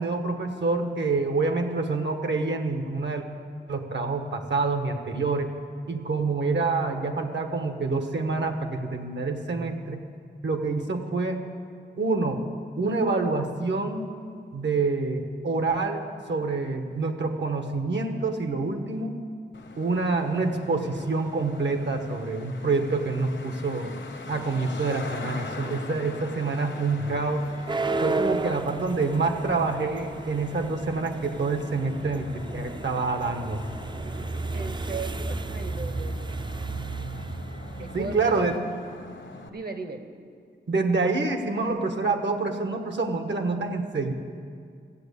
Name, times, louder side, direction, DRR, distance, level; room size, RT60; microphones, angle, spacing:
voice 1, 0.0-3.2 3.7-5.5 5.9-10.0 10.4-11.4 12.0-12.4 12.8-14.1 14.5-16.0 16.3-19.1 19.8-23.9 24.3-27.5 28.0-33.6 37.9-38.5 40.7-44.1, right 3 dB, 75° right, 5 dB, 1.3 m, -27 dB
Traffic noise roadway noise, 19.5-39.5, left 3 dB, 80° left, 1.2 m, -43 dB
sound 1, 27.1-38.6, right 3 dB, 25° right, 0.4 m, -33 dB
voice 2, 34.5-36.4 37.8-38.4 39.5-40.1, right 4 dB, 55° right, 8 dB, 1.1 m, -37 dB
14.5 x 8.4 x 8.2 m, 2.2 s
wide cardioid pair, 90°, 19 cm